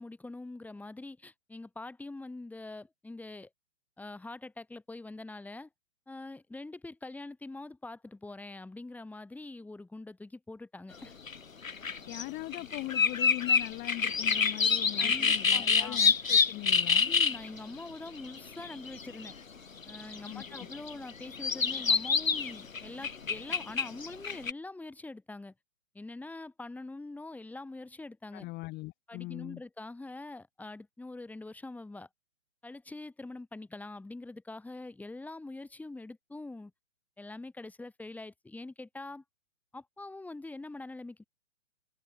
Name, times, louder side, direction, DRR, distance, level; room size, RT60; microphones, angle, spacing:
voice 1, 0.0-3.5 4.0-5.7 6.1-11.1 15.0-16.0 17.0-19.3 19.8-25.5 25.9-28.5 29.1-32.1 32.6-36.7 37.2-39.2 39.7-41.3, left 2 dB, 5° left, 4.5 m, -44 dB
sound 1, 11.3-11.4 11.6-12.2 12.5-17.6 18.1-19.3 19.8-24.5, left 5 dB, 90° left, 3.0 m, -27 dB
voice 2, 12.1-17.1 20.2-20.7 28.3-29.6, left 21 dB, 25° left, 2.9 m, -40 dB
hypercardioid pair, 135°, 39 cm